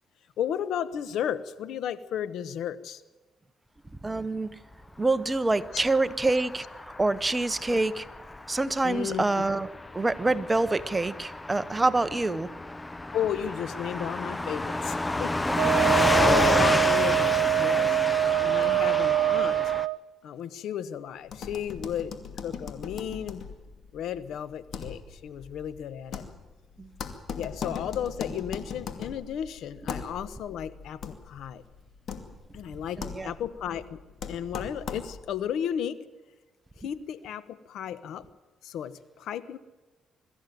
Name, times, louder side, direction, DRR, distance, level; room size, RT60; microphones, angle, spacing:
voice 1, 0.4-3.0 8.8-9.2 12.3-12.4 13.1-17.9 18.4-19.6 20.2-22.1 22.4-23.4 23.9-26.2 27.4-31.6 32.5-34.0 34.3-36.0 36.8-38.3 38.6-39.6, left 9 dB, 80° left, 15 dB, 1.0 m, -34 dB
voice 2, 4.0-4.6 5.0-6.6 7.0-8.1 8.5-9.7 9.9-12.5 15.5-16.0 26.8-26.9 33.0-33.3, right 2 dB, 20° right, 13 dB, 0.9 m, -26 dB
Car passing by / Truck, 5.5-19.9, left 2 dB, 15° left, 0.7 m, -30 dB
Wind instrument woodwind instrument, 15.6-20.0, right 12 dB, 80° right, 0.8 m, -24 dB
sound 1, 21.2-35.4, left 6 dB, 60° left, 2.4 m, -40 dB
22.5 x 14.0 x 9.2 m, 1.2 s
cardioid pair, 90°, 0 cm